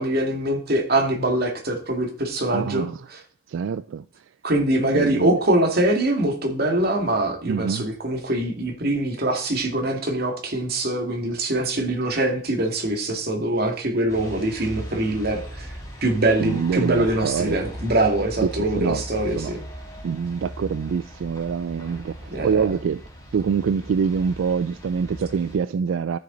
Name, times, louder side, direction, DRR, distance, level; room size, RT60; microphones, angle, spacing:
voice 1, 0.0-3.2 4.4-15.7 16.0-19.6 22.3-22.7, right 1 dB, 55° right, 2.2 m, -23 dB
voice 2, 2.5-3.0 3.5-4.0 4.9-5.4 7.5-7.9 11.3-11.4 16.4-17.6 18.4-19.0 19.4-19.5 20.0-23.0 23.3-26.2, right 6 dB, 85° right, 0.3 m, -25 dB
sound 1, 14.1-25.6, equal, 15° left, 3.8 m, -38 dB
12.5 x 7.0 x 3.9 m
head